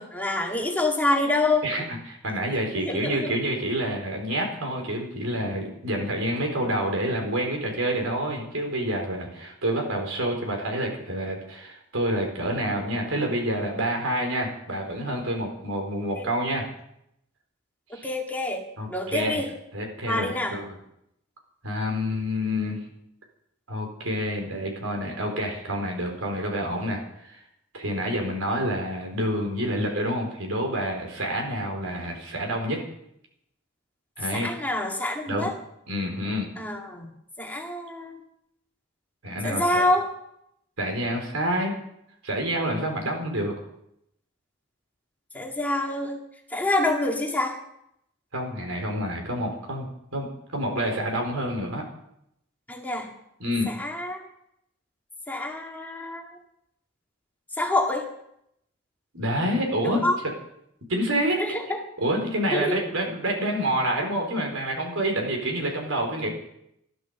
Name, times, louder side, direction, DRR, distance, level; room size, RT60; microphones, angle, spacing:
voice 1, 0.0-1.7 2.8-3.3 16.1-16.3 18.0-19.5 20.1-20.6 34.3-35.5 36.6-37.1 37.4-38.2 39.4-40.1 45.3-46.2 46.5-47.6 52.7-53.1 53.7-54.2 55.3-56.3 57.6-58.1 59.8-60.1 61.4-61.8 62.5-62.8, left 2 dB, 10° left, 0 dB, 2.0 m, -26 dB
voice 2, 1.6-16.7 17.9-18.1 18.8-20.8 21.6-22.8 23.7-27.0 27.3-27.4 27.7-32.8 34.2-34.5 35.3-35.5 35.9-36.5 39.2-39.8 40.8-41.7 42.2-43.5 48.3-51.8 53.4-53.7 59.1-60.0 60.9-61.4 62.0-66.3, equal, 80° right, 2 dB, 4.4 m, -28 dB
13.5 x 12.5 x 7.1 m, 0.76 s
head